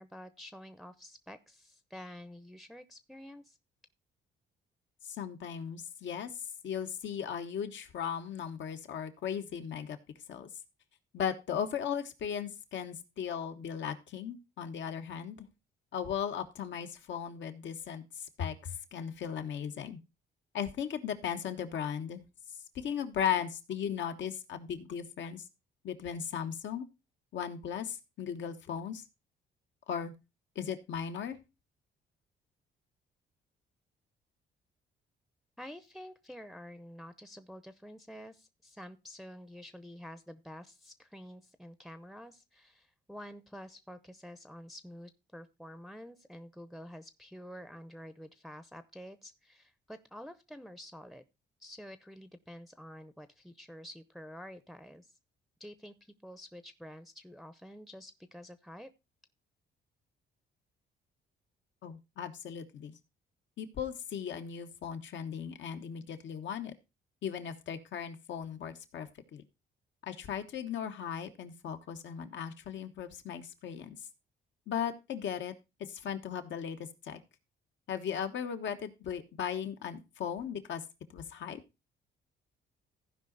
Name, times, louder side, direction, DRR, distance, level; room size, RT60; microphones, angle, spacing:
voice 1, 0.0-3.6 35.6-51.2 51.6-55.1 55.6-58.9, equal, ahead, 11 dB, 0.7 m, -49 dB
voice 2, 5.2-6.3 6.6-10.0 10.3-10.5 11.1-15.5 15.9-18.0 18.4-20.0 20.5-22.2 22.7-25.4 25.8-26.9 27.3-29.0 29.9-30.1 30.5-31.4 61.8-62.9 63.6-66.7 67.2-69.4 70.1-74.0 74.7-75.5 75.9-76.8 77.0-77.2 77.9-80.8 81.1-81.6, left 8 dB, 70° left, 8 dB, 1.3 m, -37 dB
15.0 x 5.1 x 3.9 m, 0.26 s
cardioid pair, 90°, 20 cm